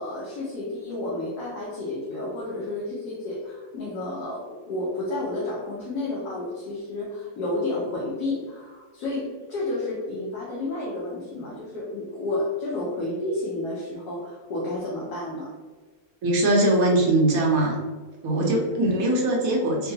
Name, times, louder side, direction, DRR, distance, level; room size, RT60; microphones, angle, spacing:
voice 1, 0.0-15.5 18.4-18.6, left 2 dB, 65° left, -5 dB, 1.2 m, -31 dB
voice 2, 16.2-17.8 18.2-19.9, right 1 dB, 60° right, -1 dB, 1.1 m, -21 dB
3.9 x 2.2 x 2.7 m, 1.4 s
omnidirectional pair, 1.9 m